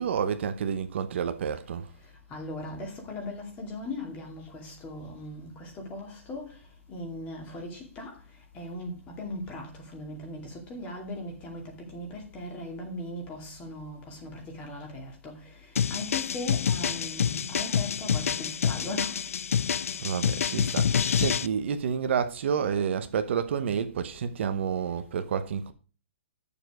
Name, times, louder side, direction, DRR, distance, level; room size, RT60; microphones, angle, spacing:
voice 1, 0.0-1.9 20.0-25.7, right 7 dB, 55° right, 0.9 m, -29 dB
voice 2, 2.3-6.4 6.9-8.1 8.6-8.9 9.2-9.7 9.9-11.6 11.9-14.3 14.6-15.3 15.9-19.1, left 2 dB, 20° left, 2.4 m, -38 dB
sound 1, 15.8-21.5, left 7 dB, 85° left, 0.4 m, -27 dB
8.9 x 6.9 x 4.9 m
hypercardioid pair, 155°, 7 cm